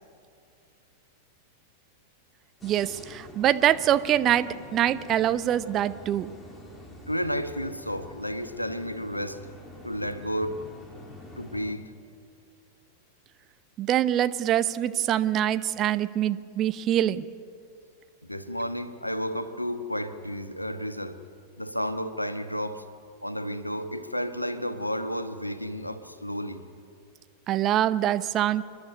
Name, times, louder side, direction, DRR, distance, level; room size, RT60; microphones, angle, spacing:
sound 1, 2.6-11.7, left 1 dB, 10° left, 3.1 m, -46 dB
voice 1, 2.6-6.3 13.8-17.2 27.5-28.6, right 11 dB, 30° right, 13 dB, 0.7 m, -24 dB
voice 2, 7.1-9.4 9.8-10.6 11.4-11.9 18.2-21.2 21.6-22.8 23.2-26.6, equal, 90° left, 10 dB, 1.1 m, -32 dB
28.5 x 11.5 x 9.5 m, 2.3 s
figure-of-eight pair, 90°, 0 cm